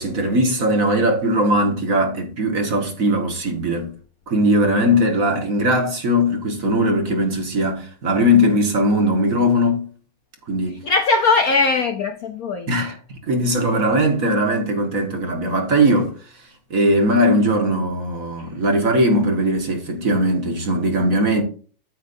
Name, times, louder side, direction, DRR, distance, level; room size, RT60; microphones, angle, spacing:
voice 1, 0.0-3.9 4.3-9.9 10.5-10.8 12.7-12.9 13.3-16.1 16.7-21.4, equal, 45° right, 1.9 m, -19 dB
voice 2, 10.7-12.8 18.4-18.5, left 3 dB, 65° left, 0.9 m, -20 dB
9.5 x 8.4 x 2.7 m
omnidirectional pair, 2.2 m